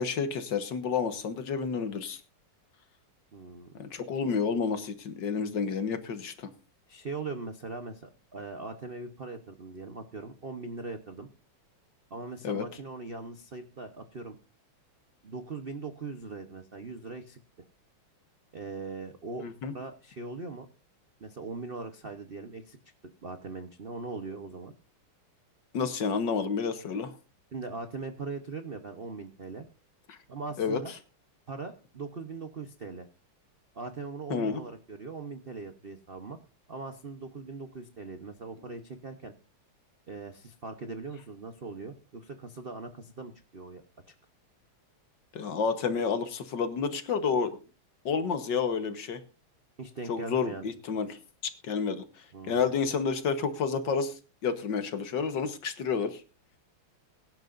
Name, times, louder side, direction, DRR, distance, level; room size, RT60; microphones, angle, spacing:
voice 1, 0.0-2.2 3.8-6.5 12.4-12.7 19.4-19.7 25.7-27.1 30.1-30.2 30.6-30.8 34.3-34.6 45.3-47.5 48.0-49.2 50.1-51.2 51.6-56.2, left 5 dB, 60° left, 10 dB, 1.7 m, -30 dB
voice 2, 3.3-3.7 6.9-11.3 12.1-14.4 15.2-17.4 18.5-19.5 19.7-20.7 21.2-22.8 23.2-24.7 27.5-29.6 30.3-30.9 31.5-33.1 33.7-36.4 36.7-39.3 40.1-44.1 49.8-50.6 52.3-52.7, right 3 dB, 50° right, 8 dB, 0.7 m, -40 dB
22.5 x 10.5 x 2.6 m, 0.32 s
omnidirectional pair, 2.4 m